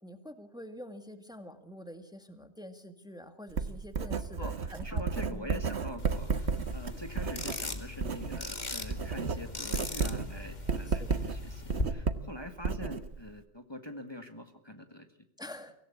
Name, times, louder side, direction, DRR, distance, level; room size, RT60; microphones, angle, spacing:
voice 1, 0.0-5.0 5.3-5.5 6.9-7.0 10.9-11.1 15.4-15.7, left 1 dB, 5° right, 8 dB, 1.9 m, -46 dB
Writing, 3.5-8.5 8.8-13.4, right 5 dB, 70° right, 1.5 m, -33 dB
voice 2, 4.4-15.1, left 1 dB, 20° left, 6 dB, 1.8 m, -44 dB
sound 1, 6.0-11.8, left 2 dB, 40° left, 2.3 m, -39 dB
24.5 x 17.0 x 8.6 m, 0.71 s
omnidirectional pair, 1.2 m